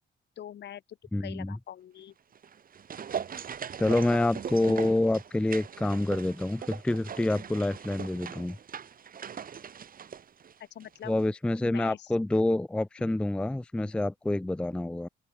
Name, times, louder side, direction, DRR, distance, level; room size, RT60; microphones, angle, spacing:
voice 1, 0.4-0.8 1.2-2.1 10.7-11.1 11.6-12.1, left 10 dB, 60° left, 1.2 m, -43 dB
voice 2, 1.1-1.6 3.8-8.6 11.0-15.1, left 1 dB, 5° left, 0.4 m, -27 dB
sound 1, 2.3-10.9 11.2-11.3, right 7 dB, 45° right, 1.4 m, -40 dB
open air
cardioid pair, 90°, 20 cm